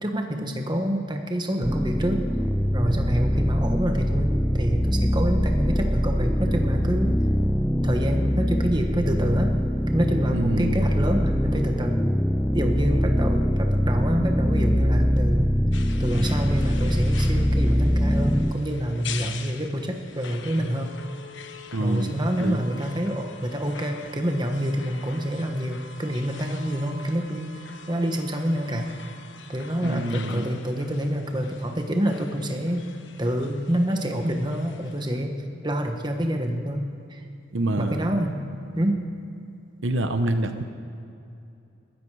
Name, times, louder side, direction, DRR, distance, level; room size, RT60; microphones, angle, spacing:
voice 1, 0.0-2.2 2.7-7.1 7.8-9.5 9.9-12.0 12.5-15.5 16.0-20.9 21.8-27.5 27.9-28.9 29.5-32.8 33.2-35.4 35.6-36.8 37.1-37.2 37.8-38.4 38.8-39.0, equal, 20° right, 4 dB, 1.2 m, -27 dB
sound 1, 1.6-18.5, equal, ahead, 0.4 m, -23 dB
voice 2, 10.3-10.9 21.7-22.7 29.8-30.4 37.5-38.1 39.8-40.6, right 1 dB, 75° right, 8 dB, 1.0 m, -27 dB
sound 2, 15.7-35.3, left 5 dB, 70° left, 1.0 m, -44 dB
21.5 x 13.0 x 4.9 m, 2.6 s
head